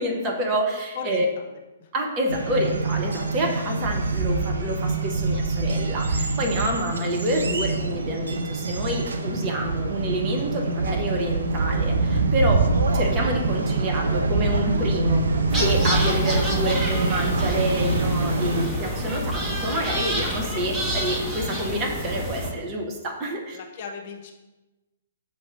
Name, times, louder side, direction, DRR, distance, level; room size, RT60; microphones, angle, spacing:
voice 1, 0.0-1.3 1.9-12.7 12.9-15.2 15.5-23.6, right 1 dB, 25° right, 0 dB, 1.1 m, -28 dB
voice 2, 0.9-1.5 1.8-1.9 23.5-24.3, left 5 dB, 45° left, 3 dB, 0.8 m, -36 dB
sound 1, 2.3-18.7, right 3 dB, 70° right, 0.6 m, -25 dB
sound 2, 15.4-19.8, left 1 dB, 10° left, 1.4 m, -41 dB
sound 3, 15.5-22.5, equal, 10° right, 1.3 m, -28 dB
6.3 x 3.1 x 5.8 m, 1.1 s
figure-of-eight pair, 120°, 0 cm